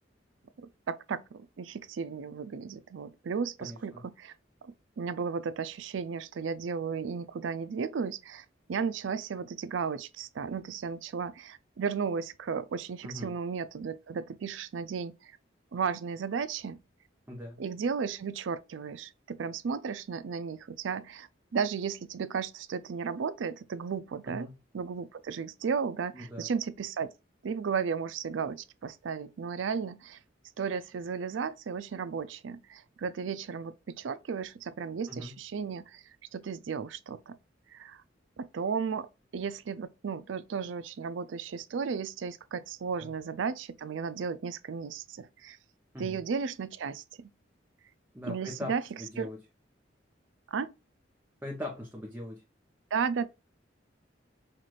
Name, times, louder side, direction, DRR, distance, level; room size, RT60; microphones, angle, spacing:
voice 1, 0.6-4.3 4.6-15.3 15.7-16.8 17.6-24.5 24.7-27.1 27.4-30.2 30.6-36.0 36.3-37.4 37.7-38.0 38.4-39.1 39.3-45.6 46.0-47.3 48.3-48.8 49.2-49.3 50.5-50.7 52.9-53.3, right 6 dB, 85° right, 0.4 m, -34 dB
voice 2, 3.6-4.0 13.0-13.3 17.3-17.6 24.3-24.6 26.1-26.5 35.1-35.3 43.0-43.1 45.9-46.2 48.1-49.4 51.4-52.4, left 1 dB, 10° right, 0.8 m, -40 dB
5.7 x 2.5 x 3.1 m
head